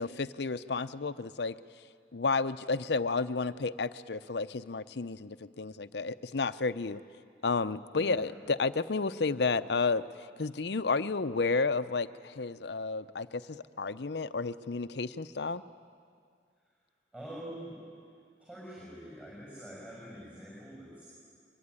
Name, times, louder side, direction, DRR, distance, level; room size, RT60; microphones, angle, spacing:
voice 1, 0.0-1.6 2.1-7.0 7.4-15.6, left 4 dB, 70° left, 13 dB, 0.7 m, -31 dB
voice 2, 7.9-8.4 17.1-17.9 18.4-21.1, equal, 10° right, -6 dB, 6.5 m, -45 dB
23.5 x 23.5 x 9.8 m, 2.2 s
head